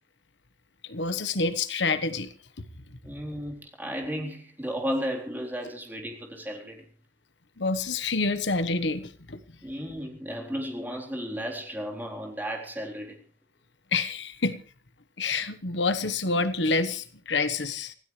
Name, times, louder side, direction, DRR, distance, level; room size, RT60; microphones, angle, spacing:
voice 1, 0.8-2.3 7.6-9.4 13.9-14.6 15.2-17.9, left 3 dB, 75° left, 11 dB, 1.3 m, -27 dB
voice 2, 3.0-6.8 9.6-13.2, equal, 10° right, 0 dB, 3.9 m, -34 dB
26.0 x 16.5 x 3.3 m, 0.37 s
head